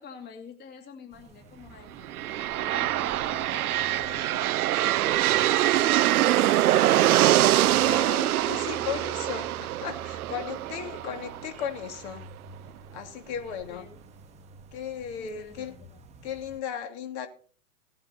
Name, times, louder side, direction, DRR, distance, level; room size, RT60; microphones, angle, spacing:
voice 1, 0.0-2.1 2.6-4.5 5.0-7.5 8.2-9.4 13.5-14.0 15.2-16.0, left 5 dB, 20° left, 2.3 m, -48 dB
sound 1, 1.1-16.6, right 2 dB, 15° right, 1.3 m, -50 dB
sound 2, 2.0-11.9, right 14 dB, 80° right, 0.6 m, -24 dB
voice 2, 7.8-12.3 12.9-13.9 14.7-15.8 16.2-17.3, left 8 dB, 50° left, 2.6 m, -36 dB
16.5 x 9.4 x 4.2 m
hypercardioid pair, 130°, 43 cm